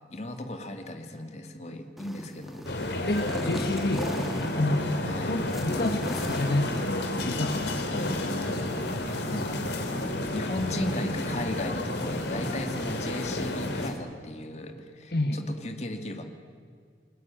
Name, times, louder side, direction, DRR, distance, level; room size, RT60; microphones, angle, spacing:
voice 1, 0.1-2.7 5.0-5.4 9.1-9.7 10.3-16.2, left 1 dB, 35° left, 6 dB, 2.2 m, -36 dB
kiara ronroneo, 2.0-14.0, equal, ahead, 1.9 m, -43 dB
sound 1, 2.6-13.9, left 1 dB, 75° left, 3.3 m, -31 dB
voice 2, 3.1-4.3 4.6-4.9 5.3-9.6 15.1-15.5, left 2 dB, 60° left, 5 dB, 1.5 m, -30 dB
29.0 x 21.0 x 9.1 m, 2.1 s
head